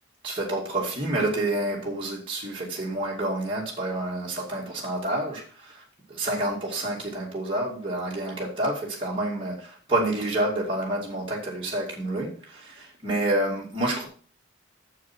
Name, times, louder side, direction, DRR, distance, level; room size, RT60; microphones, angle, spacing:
voice 1, 0.2-5.8 6.1-14.1, right 1 dB, 25° right, -5 dB, 2.4 m, -28 dB
9.4 x 7.5 x 4.5 m, 0.43 s
head